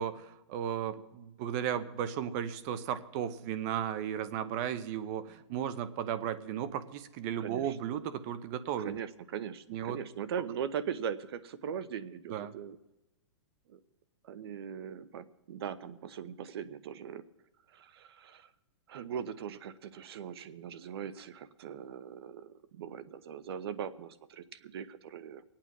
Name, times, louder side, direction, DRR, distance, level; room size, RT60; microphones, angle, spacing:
voice 1, 0.0-9.0 9.7-10.0 12.3-12.5, right 9 dB, 35° right, 13 dB, 0.9 m, -35 dB
voice 2, 7.4-7.8 8.8-12.8 13.7-13.8 14.2-17.2 17.7-18.5 18.9-25.4, right 8 dB, 60° right, 14 dB, 1.0 m, -40 dB
23.0 x 8.9 x 6.1 m, 0.92 s
hypercardioid pair, 155°, 15 cm